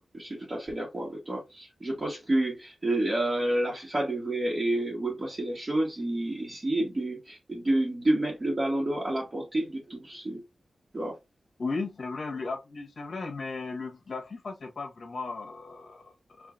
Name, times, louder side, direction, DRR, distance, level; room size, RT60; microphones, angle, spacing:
voice 1, 0.0-10.4 10.9-11.2, right 1 dB, 35° right, 1.3 m, -29 dB
voice 2, 11.6-16.5, left 3 dB, 60° left, 1.2 m, -36 dB
4.9 x 2.6 x 2.6 m
wide cardioid pair, 90°, 0 cm